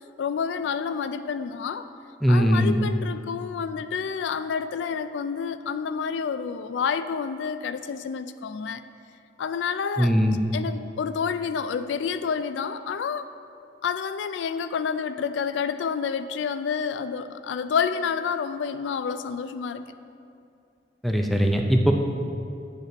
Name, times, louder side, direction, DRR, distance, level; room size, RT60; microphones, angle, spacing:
voice 1, 0.2-1.9 2.3-8.8 9.4-10.1 10.5-13.3 13.8-19.9, left 6 dB, 80° left, 11 dB, 0.3 m, -29 dB
voice 2, 2.2-2.8 10.0-10.4 21.0-21.9, equal, ahead, 2 dB, 0.5 m, -20 dB
8.3 x 7.0 x 4.0 m, 2.5 s
head